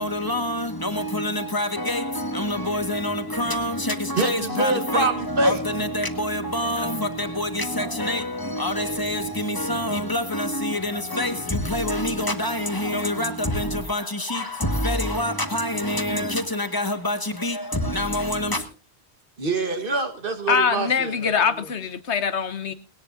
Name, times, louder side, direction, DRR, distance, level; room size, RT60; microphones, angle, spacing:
voice 1, 0.0-18.7, left 1 dB, 20° left, 1.5 m, -26 dB
voice 2, 4.2-5.6 19.4-21.7, right 2 dB, 55° right, 1.5 m, -25 dB
voice 3, 20.5-22.7, left 6 dB, 90° left, 1.4 m, -23 dB
19.5 x 18.0 x 2.6 m
omnidirectional pair, 1.1 m